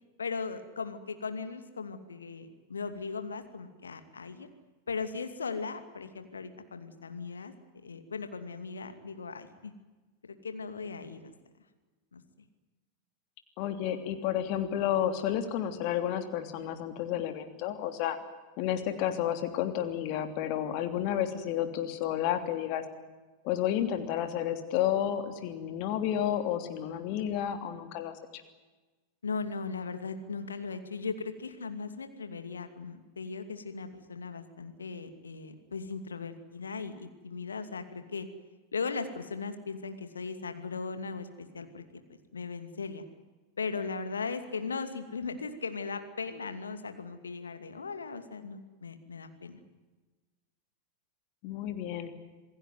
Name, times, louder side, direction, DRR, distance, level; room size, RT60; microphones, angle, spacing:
voice 1, 0.2-4.5 4.9-7.5 7.8-9.7 10.4-11.3 12.1-12.2 29.2-38.3 38.7-41.8 42.3-43.0 43.6-49.6, left 4 dB, 70° left, 9 dB, 2.5 m, -38 dB
voice 2, 13.6-18.2 18.6-22.8 23.4-28.1 51.4-52.1, left 10 dB, 45° left, 8 dB, 3.1 m, -31 dB
27.5 x 18.0 x 9.4 m, 1.2 s
figure-of-eight pair, 90°, 0 cm